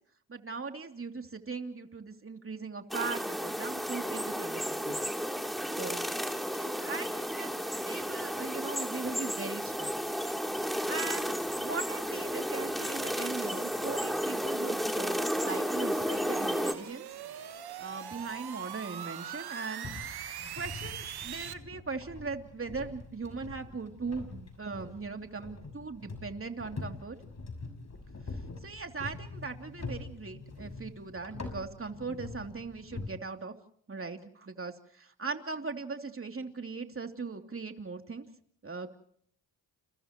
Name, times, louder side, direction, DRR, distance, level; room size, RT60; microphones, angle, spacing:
voice 1, 0.3-5.1 5.8-6.0 6.5-10.0 10.9-11.3 11.6-17.1 17.8-19.9 20.6-27.2 28.3-33.5 33.9-38.3 38.6-38.9, right 4 dB, 30° right, 5 dB, 3.0 m, -39 dB
sound 1, 2.9-16.7, equal, ahead, 3.2 m, -33 dB
sound 2, 10.2-21.5, right 10 dB, 60° right, 1.4 m, -44 dB
sound 3, 19.8-33.1, left 3 dB, 40° left, 6.3 m, -44 dB
30.0 x 29.0 x 3.0 m, 0.64 s
supercardioid pair, 55°, 42 cm